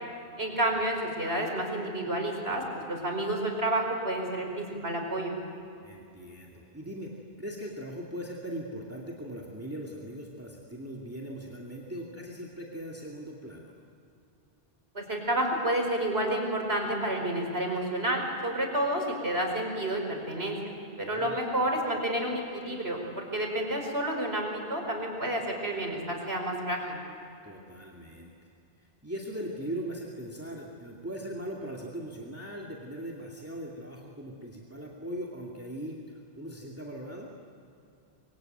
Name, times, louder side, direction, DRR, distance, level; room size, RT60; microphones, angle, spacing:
voice 1, 0.4-5.3 15.0-20.7 21.0-27.0, right 1 dB, 85° right, 2 dB, 5.2 m, -30 dB
voice 2, 5.8-7.1 7.4-13.7 21.0-21.4 27.4-28.3 28.8-37.3, equal, 15° right, -3 dB, 2.5 m, -40 dB
25.5 x 24.0 x 9.2 m, 2.6 s
omnidirectional pair, 1.0 m